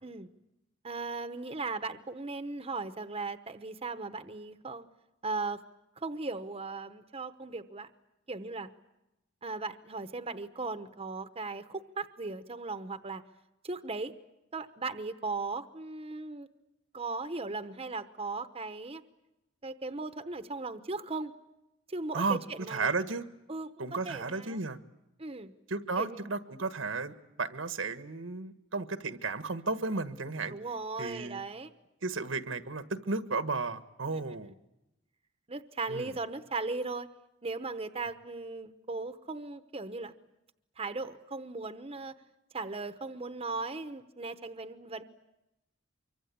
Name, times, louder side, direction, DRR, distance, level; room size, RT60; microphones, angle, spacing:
voice 1, 0.8-4.9 5.2-5.6 6.0-7.9 8.3-8.7 9.4-13.2 13.6-14.1 14.5-16.5 16.9-19.0 19.6-21.3 21.9-22.9 23.5-24.6 25.2-25.5 26.0-26.3 30.5-31.7 34.1-34.2 35.5-37.1 37.4-40.1 40.8-42.1 42.5-45.0, right 3 dB, 30° right, 9 dB, 0.9 m, -37 dB
voice 2, 22.7-23.3 23.8-24.8 25.7-30.5 31.0-31.4 32.0-34.5 35.9-36.1, right 3 dB, 85° right, 10 dB, 1.5 m, -33 dB
24.5 x 24.5 x 8.6 m, 0.92 s
head